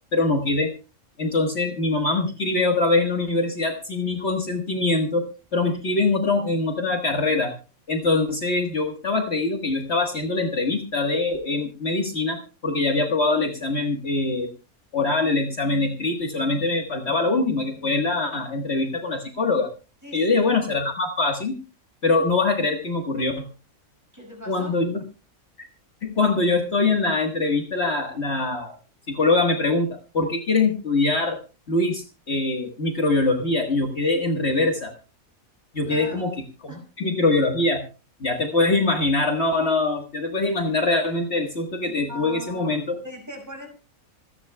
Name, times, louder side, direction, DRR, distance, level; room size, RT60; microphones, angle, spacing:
voice 1, 0.1-0.7 1.2-7.5 7.9-14.5 14.9-19.7 20.1-21.5 22.0-23.5 24.5-25.0 26.0-28.8 29.1-31.4 31.7-34.9 35.7-36.3 37.0-37.8 38.2-43.0, left 3 dB, 50° left, 1.8 m, -23 dB
voice 2, 20.0-20.4 24.1-24.8 35.8-36.3 36.7-36.9 41.9-42.8 43.0-43.7, left 1 dB, 10° right, 5.8 m, -39 dB
27.0 x 10.0 x 2.3 m
omnidirectional pair, 1.5 m